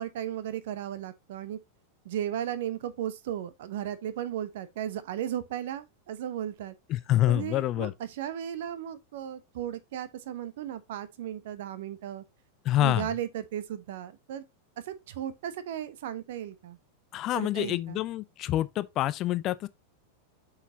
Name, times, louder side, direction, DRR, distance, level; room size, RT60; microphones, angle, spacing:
voice 1, 0.0-1.6 2.0-6.7 7.3-12.2 12.8-14.4 14.9-16.8 17.3-18.0, right 10 dB, 55° right, 1.0 m, -35 dB
voice 2, 6.9-7.9 12.6-13.1 17.1-19.7, left 14 dB, 35° left, 0.5 m, -27 dB
8.2 x 5.7 x 2.8 m
figure-of-eight pair, 90°, 0 cm